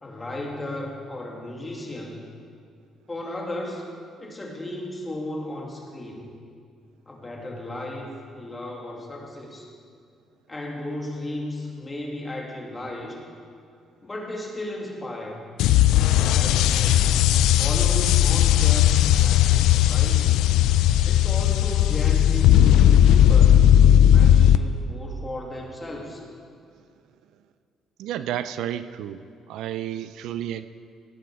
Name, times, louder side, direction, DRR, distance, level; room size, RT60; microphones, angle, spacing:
voice 1, 0.0-2.3 3.1-3.9 4.2-6.3 7.1-9.8 10.5-13.2 14.0-15.4 16.1-17.2 17.5-20.4 21.0-26.2, left 1 dB, 20° left, -1 dB, 2.7 m, -35 dB
sound 1, 15.6-24.6, left 11 dB, 80° left, 0.4 m, -17 dB
voice 2, 28.0-29.2 29.5-30.7, right 11 dB, 80° right, 12 dB, 0.5 m, -31 dB
17.5 x 9.4 x 5.0 m, 2.3 s
supercardioid pair, 80°, 0 cm